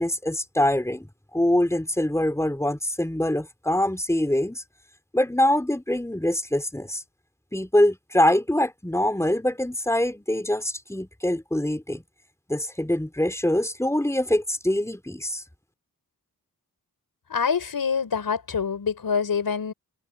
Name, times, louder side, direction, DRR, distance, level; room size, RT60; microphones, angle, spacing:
voice 1, 0.0-4.6 5.1-7.0 7.5-12.0 12.5-15.4, left 1 dB, 10° left, 4.4 m, -24 dB
voice 2, 17.3-19.7, left 6 dB, 75° left, 5.0 m, -25 dB
cardioid pair, 55°, 36 cm